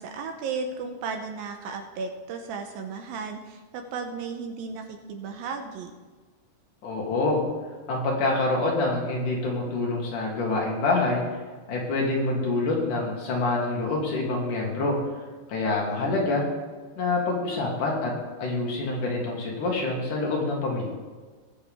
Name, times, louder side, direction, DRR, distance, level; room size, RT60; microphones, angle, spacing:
voice 1, 0.0-5.9 15.8-16.2, right 5 dB, 75° right, 5 dB, 2.5 m, -35 dB
voice 2, 6.8-7.4 7.9-11.2 11.7-15.0 15.5-16.4 17.0-18.1 18.4-20.9, left 2 dB, 60° left, -2 dB, 3.2 m, -26 dB
20.5 x 6.9 x 3.6 m, 1.4 s
omnidirectional pair, 4.5 m